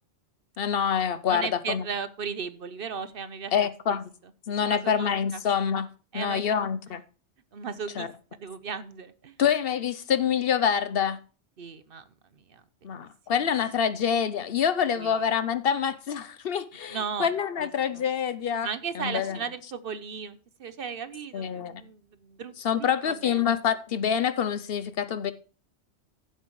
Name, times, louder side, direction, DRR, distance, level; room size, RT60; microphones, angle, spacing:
voice 1, 0.6-1.8 3.5-4.1 4.5-5.9 6.1-7.0 8.0-8.1 9.4-11.2 12.8-18.7 18.9-19.4 21.3-21.8 22.6-25.3, left 7 dB, 60° left, 0.8 m, -26 dB
voice 2, 1.3-3.5 3.9-4.0 4.6-5.4 6.1-6.7 7.5-8.1 8.4-9.3 11.6-12.0 12.3-12.6 15.0-15.3 16.9-17.3 17.6-18.1 18.6-22.5 22.8-23.5, right 6 dB, 55° right, 0.9 m, -36 dB
15.0 x 7.6 x 3.1 m
omnidirectional pair, 1.2 m